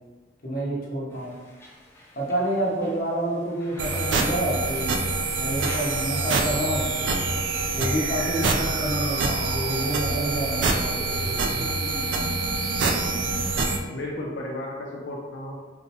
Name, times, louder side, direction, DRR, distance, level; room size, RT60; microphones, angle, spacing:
voice 1, 0.4-1.4 2.1-5.0 5.4-7.2 7.7-11.3, right 1 dB, 55° left, -5 dB, 0.8 m, -28 dB
sound 1, 1.1-7.4, left 1 dB, 15° left, 0.4 m, -46 dB
sound 2, 3.8-13.8, right 3 dB, 85° right, 0.4 m, -26 dB
voice 2, 13.9-15.6, left 1 dB, 85° left, -3 dB, 0.4 m, -33 dB
4.2 x 2.1 x 2.8 m, 1.3 s
head